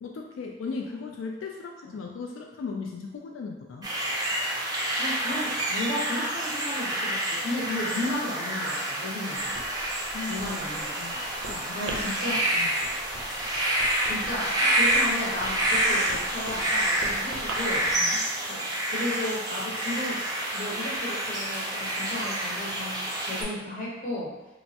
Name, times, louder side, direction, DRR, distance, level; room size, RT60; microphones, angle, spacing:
voice 1, 0.0-3.9 10.1-10.4 11.0-13.0 17.9-18.2, left 4 dB, 90° left, 1 dB, 0.3 m, -37 dB
sound 1, 3.8-23.4, right 1 dB, 20° right, 0.4 m, -28 dB
voice 2, 5.0-9.5 10.3-11.0 11.7-12.4 14.0-17.9 18.5-18.6 18.9-20.2 20.5-24.3, left 1 dB, 40° left, -5 dB, 0.8 m, -34 dB
Writing, 9.4-18.0, right 1 dB, 85° right, 0.5 m, -42 dB
3.2 x 2.0 x 2.7 m, 1.0 s
head